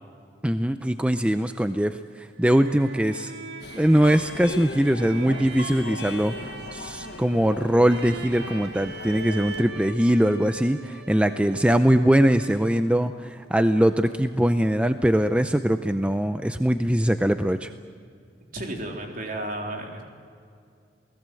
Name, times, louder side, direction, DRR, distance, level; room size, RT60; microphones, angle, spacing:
voice 1, 0.4-3.3 3.8-6.3 6.7-17.7, equal, 5° right, 9 dB, 0.6 m, -22 dB
sound 1, 2.2-13.0, right 2 dB, 70° right, 2.4 m, -41 dB
Subway metro underground, 3.6-9.6, left 2 dB, 65° left, 1.5 m, -39 dB
voice 2, 18.5-20.0, right 1 dB, 55° right, 1 dB, 3.8 m, -33 dB
28.5 x 18.5 x 7.7 m, 2.2 s
head